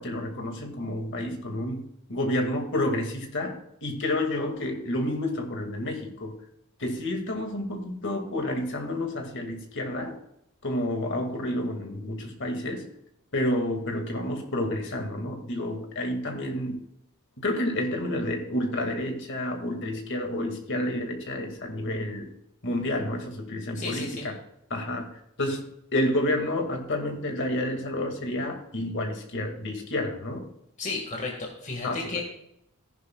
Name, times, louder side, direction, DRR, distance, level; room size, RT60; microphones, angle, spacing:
voice 1, 0.0-6.4 6.8-10.2 10.6-12.8 13.3-16.8 17.4-22.3 22.6-24.4 24.7-30.5 31.8-32.1, left 1 dB, 55° left, 3 dB, 2.2 m, -30 dB
voice 2, 23.8-24.3 30.8-32.2, left 3 dB, 35° left, 0 dB, 1.9 m, -33 dB
14.5 x 11.0 x 2.4 m, 0.77 s
head